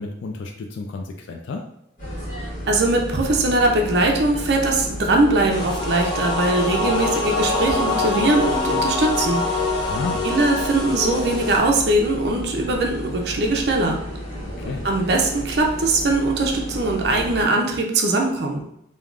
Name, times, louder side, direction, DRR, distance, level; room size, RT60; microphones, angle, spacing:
voice 1, 0.0-1.7 9.9-10.2 14.4-14.9, left 3 dB, 75° left, 2 dB, 0.3 m, -31 dB
sound 1, 2.0-17.4, equal, 45° left, 1.0 m, -33 dB
voice 2, 2.7-9.6 10.2-14.0 14.8-18.6, right 2 dB, 60° right, 1 dB, 0.5 m, -21 dB
sound 2, 5.5-11.6, left 2 dB, 20° left, 0.5 m, -25 dB
3.3 x 2.2 x 2.4 m, 0.76 s
head